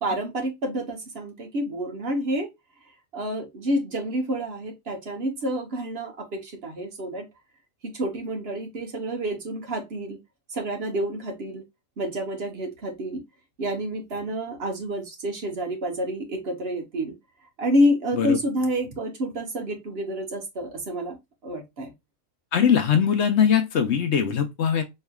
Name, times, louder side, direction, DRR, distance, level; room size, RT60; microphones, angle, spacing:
voice 1, 0.0-2.5 3.1-7.3 7.8-10.2 10.5-11.6 12.0-13.2 13.6-17.2 17.6-21.2 21.4-21.9, equal, 50° right, 1.2 m, -28 dB
voice 2, 22.5-24.8, left 8 dB, 65° left, 0.9 m, -21 dB
4.6 x 3.1 x 2.2 m
omnidirectional pair, 1.4 m